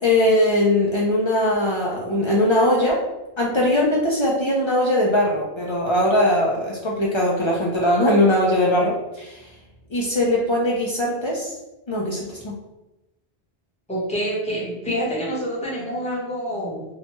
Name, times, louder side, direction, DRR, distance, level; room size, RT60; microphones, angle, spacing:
voice 1, 0.0-3.0 3.4-9.4 9.9-11.5 11.9-12.5, left 1 dB, 50° left, -3 dB, 0.3 m, -20 dB
voice 2, 13.9-16.9, equal, 5° left, -7 dB, 0.8 m, -27 dB
2.7 x 2.2 x 2.9 m, 0.98 s
omnidirectional pair, 1.0 m